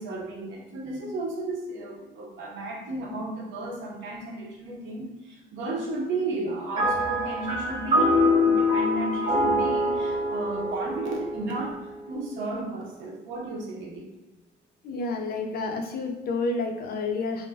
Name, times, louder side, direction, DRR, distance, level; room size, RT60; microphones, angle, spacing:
voice 1, 0.0-14.1, right 2 dB, 85° right, -1 dB, 0.7 m, -34 dB
sound 1, 6.8-12.3, left 1 dB, 25° right, 0.6 m, -25 dB
voice 2, 14.8-17.5, left 3 dB, 50° left, 3 dB, 0.4 m, -29 dB
2.4 x 2.1 x 3.3 m, 1.1 s
cardioid pair, 180°, 19 cm